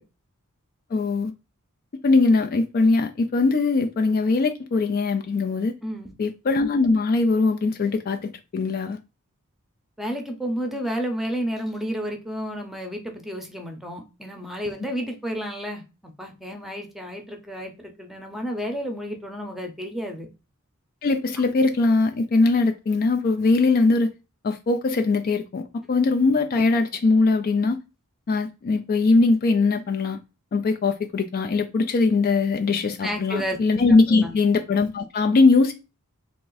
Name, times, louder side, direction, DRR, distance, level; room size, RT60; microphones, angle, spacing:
voice 1, 0.9-1.3 2.0-5.7 6.2-9.0 21.0-24.1 24.4-27.8 28.3-30.2 30.5-35.7, left 3 dB, 45° left, 0.4 m, -21 dB
voice 2, 5.8-6.1 10.0-20.3 33.0-33.6 34.1-34.3, equal, ahead, 0.7 m, -31 dB
3.6 x 2.5 x 3.9 m
head